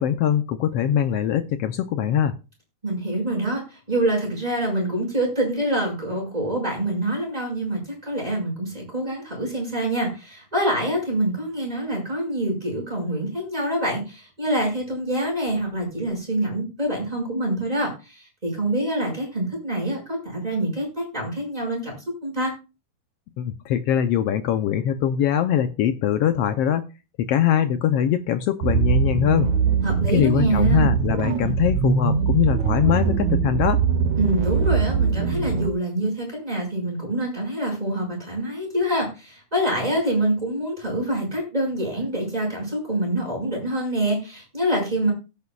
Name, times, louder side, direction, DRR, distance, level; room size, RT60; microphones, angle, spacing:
voice 1, 0.0-2.3 23.4-26.9 27.3-29.5 30.1-33.8, left 10 dB, 80° left, 9 dB, 1.4 m, -22 dB
voice 2, 2.8-21.9 22.2-22.5 29.8-30.9 34.2-45.1, right 1 dB, 10° right, 0 dB, 5.7 m, -26 dB
sound 1, 28.6-35.7, right 6 dB, 70° right, 2.2 m, -22 dB
18.0 x 8.2 x 2.3 m, 0.30 s
omnidirectional pair, 3.5 m